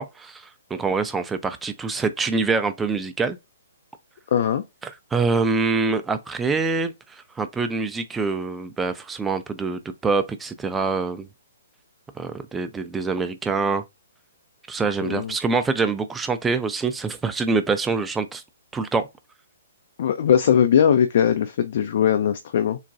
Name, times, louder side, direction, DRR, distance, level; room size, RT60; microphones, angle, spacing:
voice 1, 0.0-3.4 4.8-11.3 12.2-13.8 14.7-18.4 18.7-19.1, right 4 dB, 10° right, 0.4 m, -25 dB
voice 2, 4.3-4.6 15.0-15.3 20.0-22.8, left 8 dB, 50° left, 0.4 m, -20 dB
3.9 x 2.2 x 2.6 m
figure-of-eight pair, 125°, 0 cm